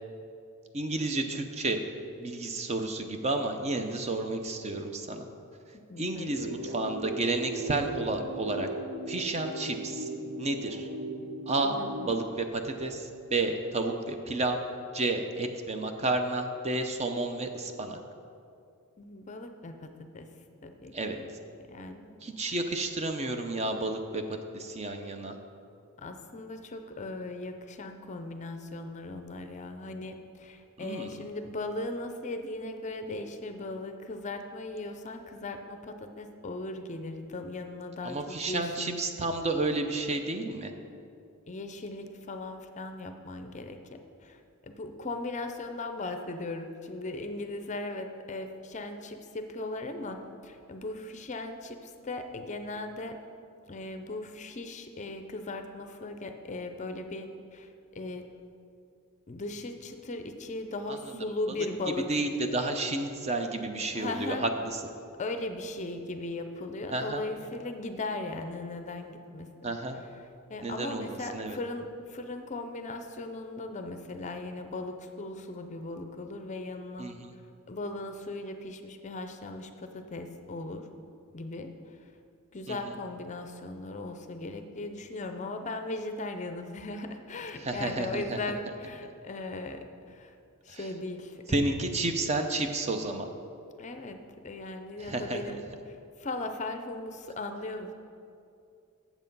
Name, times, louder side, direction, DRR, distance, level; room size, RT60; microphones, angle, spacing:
voice 1, 0.7-1.8 2.2-5.3 6.0-8.7 9.1-10.1 10.4-10.9 11.5-11.8 12.0-14.6 14.9-18.0 20.9-21.2 22.2-24.2 24.5-25.4 30.8-31.2 38.0-40.7 60.9-61.2 62.1-64.5 66.9-67.2 69.6-70.0 70.6-71.6 77.0-77.3 82.7-82.9 87.6-88.4 90.7-90.8 91.5-93.3 95.0-95.4, right 2 dB, 30° right, 6 dB, 0.5 m, -31 dB
voice 2, 5.7-6.8 11.6-12.2 19.0-20.3 20.6-21.2 21.7-22.6 26.0-39.0 41.5-43.8 44.2-53.2 53.7-58.3 59.3-62.2 64.0-64.5 65.2-69.7 70.5-77.1 77.7-80.9 81.3-82.1 82.5-90.3 90.6-91.6 93.8-97.9, left 2 dB, 35° left, 7 dB, 0.5 m, -38 dB
sound 1, 6.2-12.2, right 2 dB, 80° right, 0.8 m, -38 dB
7.9 x 7.2 x 5.3 m, 2.5 s
head